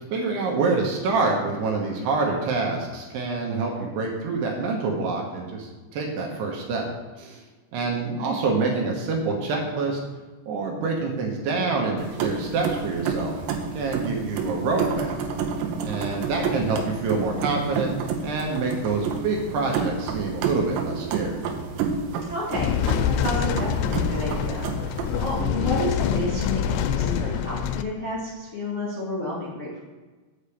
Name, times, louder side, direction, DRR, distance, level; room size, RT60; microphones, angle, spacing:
voice 1, 0.1-6.8 7.2-7.4 7.7-10.0 10.5-13.3 13.7-15.1 15.8-17.9 18.2-21.4 25.3-25.7, right 3 dB, 75° right, 0 dB, 3.0 m, -26 dB
sound 1, 12.0-25.4, right 5 dB, 90° right, 3.1 m, -30 dB
voice 2, 22.3-29.8, left 2 dB, 30° left, -9 dB, 1.5 m, -31 dB
sound 2, 22.5-27.8, left 8 dB, 85° left, 2.5 m, -26 dB
8.2 x 5.0 x 7.0 m, 1.3 s
omnidirectional pair, 5.2 m